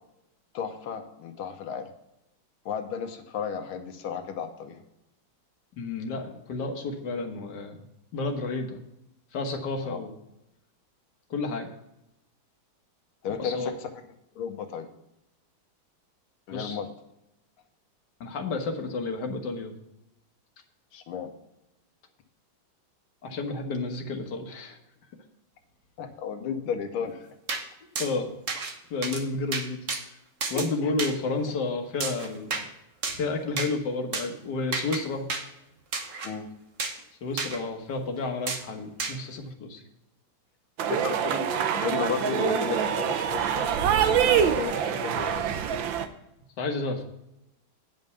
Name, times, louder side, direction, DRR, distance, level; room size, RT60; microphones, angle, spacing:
voice 1, 0.5-1.9 2.7-4.8 9.8-10.0 13.2-14.0 14.4-14.9 16.5-16.9 20.9-21.3 26.0-27.2 30.6-30.9 36.2-36.5 40.9-43.7 44.4-45.5, left 7 dB, 90° left, 6 dB, 1.9 m, -33 dB
voice 2, 5.8-7.8 8.1-8.8 9.3-10.1 11.3-11.7 13.4-13.7 16.5-16.8 18.2-19.7 23.2-24.8 28.0-28.3 28.9-29.8 30.5-32.6 33.1-35.3 37.2-39.8 46.6-47.0, left 3 dB, 60° left, 4 dB, 1.8 m, -31 dB
sound 1, 27.5-27.6 28.0-28.1 28.5-28.7 29.0-29.2 29.5-30.0 30.4-30.7 31.0-31.1 32.0-32.7 33.0-33.2 33.6-33.7 34.1-34.3 34.7-35.0 35.3-35.4 35.9-36.3 36.8-37.0 37.4-37.6 38.5-38.6 39.0-39.2, right 4 dB, 45° right, 1.3 m, -31 dB
sound 2, 40.8-46.1, right 8 dB, 70° right, 1.5 m, -25 dB
9.6 x 5.4 x 6.7 m, 0.85 s
omnidirectional pair, 2.2 m